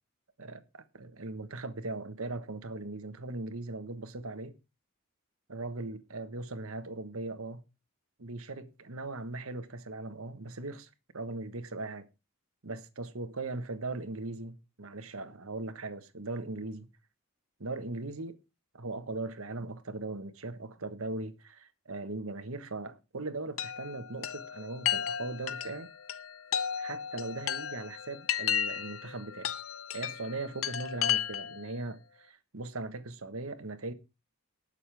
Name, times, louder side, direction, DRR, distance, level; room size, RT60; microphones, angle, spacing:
voice 1, 0.4-4.6 5.5-7.6 8.2-12.1 12.6-16.9 17.6-18.4 18.7-25.9 26.8-29.5 29.9-33.9, right 2 dB, 70° right, 1.3 m, -39 dB
Chime, 23.6-31.7, left 9 dB, 65° left, 0.8 m, -34 dB
19.0 x 6.6 x 3.4 m
head